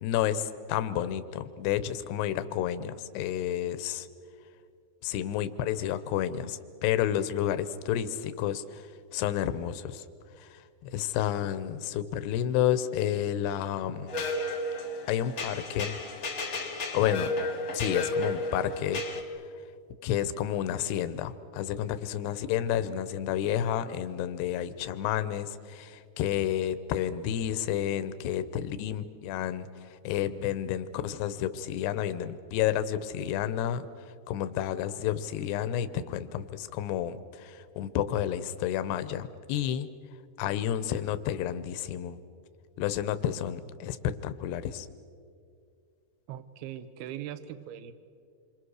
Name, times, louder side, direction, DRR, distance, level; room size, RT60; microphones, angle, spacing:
voice 1, 0.0-4.1 5.0-8.8 9.1-10.0 10.4-14.1 15.1-16.0 16.9-17.3 17.7-19.3 20.0-33.9 34.3-39.9 40.4-42.2 42.8-44.9, left 10 dB, 85° left, 12 dB, 2.9 m, -30 dB
sound 1, 14.1-19.2, left 2 dB, 50° left, 1.5 m, -33 dB
voice 2, 46.3-47.9, right 11 dB, 75° right, 12 dB, 2.8 m, -40 dB
27.5 x 25.5 x 6.4 m, 2.3 s
omnidirectional pair, 4.9 m